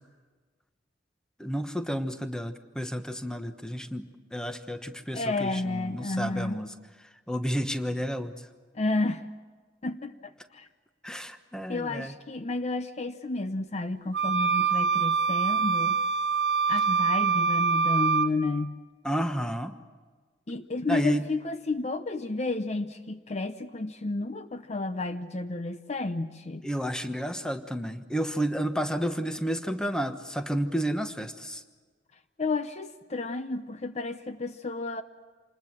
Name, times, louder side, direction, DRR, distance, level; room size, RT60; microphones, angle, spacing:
voice 1, 1.4-4.0 4.3-6.7 7.3-8.3 11.0-12.1 19.0-19.7 20.9-21.3 26.6-31.6, equal, 5° left, 8 dB, 1.2 m, -31 dB
voice 2, 5.1-6.6 8.7-9.3 9.8-10.7 11.7-16.0 16.7-18.8 20.5-26.6 32.4-35.0, left 3 dB, 40° left, 10 dB, 0.7 m, -31 dB
sound 1, 14.1-18.3, right 5 dB, 70° right, 1.1 m, -25 dB
27.0 x 20.5 x 7.4 m, 1.4 s
head